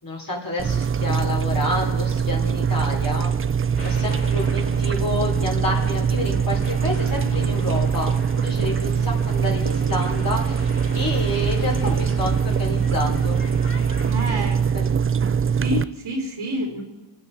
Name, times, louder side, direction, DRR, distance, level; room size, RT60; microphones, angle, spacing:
voice 1, 0.0-3.3 3.8-10.7 10.9-13.4 14.7-15.0, left 1 dB, 45° left, -2 dB, 3.6 m, -29 dB
sound 1, 0.6-15.8, right 7 dB, 30° right, 0.3 m, -22 dB
sound 2, 3.7-14.1, left 1 dB, 25° left, 3.9 m, -38 dB
voice 2, 14.1-14.6 15.6-16.8, equal, 80° right, -4 dB, 3.7 m, -27 dB
27.0 x 9.4 x 4.1 m, 1.1 s
wide cardioid pair, 60°, 48 cm